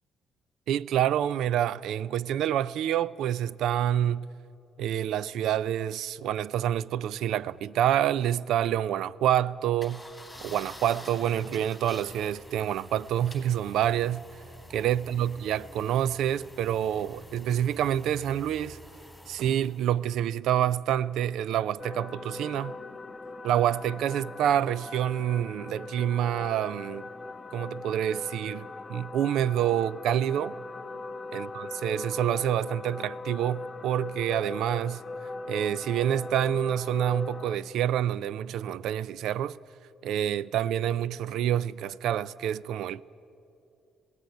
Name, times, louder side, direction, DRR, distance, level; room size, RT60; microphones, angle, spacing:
voice 1, 0.7-4.3 4.8-10.0 10.4-14.2 14.7-18.8 19.3-22.7 23.4-27.1 27.5-30.6 31.3-35.0 35.5-39.6 40.0-43.0, right 10 dB, 80° right, 0.4 m, -27 dB
sound 1, 9.8-19.9, left 1 dB, 5° left, 4.2 m, -48 dB
sound 2, 21.8-37.6, left 2 dB, 25° left, 1.1 m, -39 dB
19.5 x 16.5 x 9.2 m
cardioid pair, 90°, 0 cm